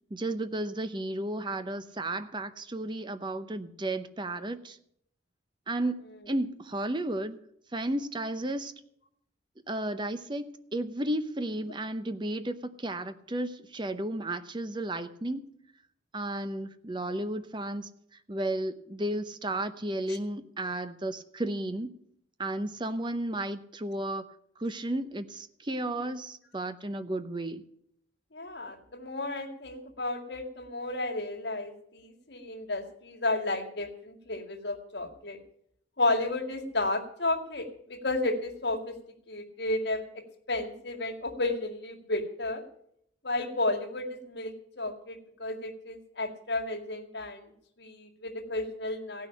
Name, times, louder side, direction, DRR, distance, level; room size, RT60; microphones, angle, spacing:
voice 1, 0.1-4.8 5.7-7.4 7.7-8.7 9.7-15.5 16.1-17.9 18.3-22.0 22.4-24.2 24.6-27.6, right 1 dB, 25° right, 11 dB, 0.7 m, -33 dB
voice 2, 28.3-35.4 36.0-39.0 39.3-40.2 40.5-42.6 43.2-47.5 47.8-49.3, left 2 dB, 60° left, 2 dB, 2.0 m, -32 dB
16.0 x 6.2 x 10.0 m, 0.72 s
head